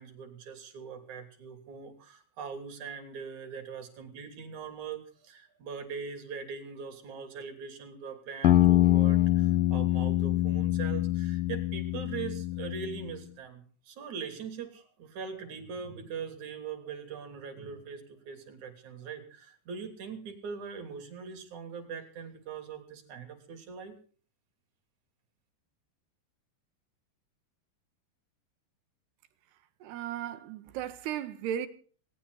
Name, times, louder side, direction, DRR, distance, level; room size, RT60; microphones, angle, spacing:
voice 1, 0.0-24.0, right 6 dB, 45° right, 3.9 m, -41 dB
sound 1, 8.4-13.1, left 15 dB, 65° left, 2.4 m, -25 dB
voice 2, 29.8-31.7, right 10 dB, 70° right, 2.9 m, -35 dB
19.5 x 18.5 x 4.0 m
omnidirectional pair, 5.4 m